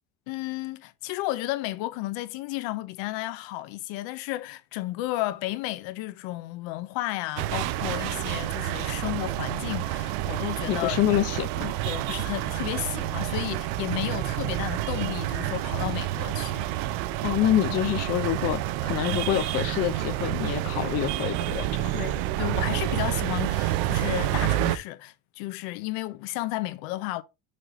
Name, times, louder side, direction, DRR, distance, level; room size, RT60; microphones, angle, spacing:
voice 1, 0.3-11.0 11.9-16.8 21.9-27.2, left 17 dB, 70° left, 0.8 m, -33 dB
sound 1, 7.4-24.8, right 15 dB, 80° right, 0.8 m, -29 dB
voice 2, 10.7-11.7 17.2-21.9, left 13 dB, 35° left, 0.5 m, -26 dB
6.6 x 3.9 x 4.1 m
cardioid pair, 175°, 46 cm